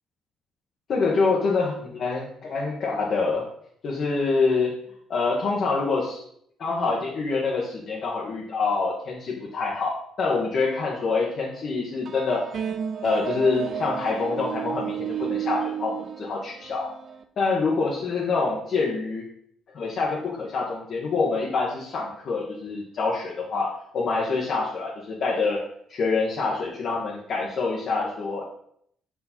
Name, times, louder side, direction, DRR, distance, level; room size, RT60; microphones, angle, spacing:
voice 1, 0.9-3.5 3.8-4.8 5.1-6.2 6.6-12.8 13.0-16.9 17.4-19.2 19.7-25.6 25.9-28.4, left 4 dB, 55° left, -3 dB, 1.2 m, -26 dB
sound 1, 12.1-17.2, right 8 dB, 55° right, 0.5 m, -32 dB
5.1 x 4.7 x 4.3 m, 0.69 s
cardioid pair, 90°, 0 cm